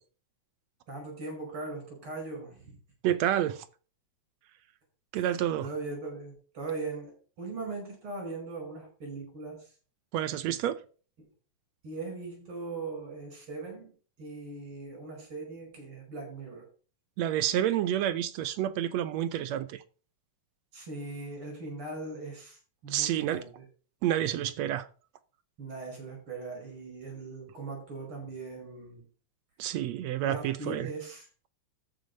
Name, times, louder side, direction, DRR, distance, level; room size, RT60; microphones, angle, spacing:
voice 1, 0.9-2.7 5.1-9.7 11.8-13.9 14.2-16.7 20.7-23.6 25.6-29.1 30.2-31.3, right 3 dB, 45° right, 5.9 m, -40 dB
voice 2, 3.0-3.7 5.1-5.7 10.1-10.8 17.2-19.8 22.9-23.4 24.0-24.9 29.6-30.9, right 11 dB, 75° right, 1.9 m, -29 dB
13.0 x 5.3 x 5.4 m
omnidirectional pair, 3.3 m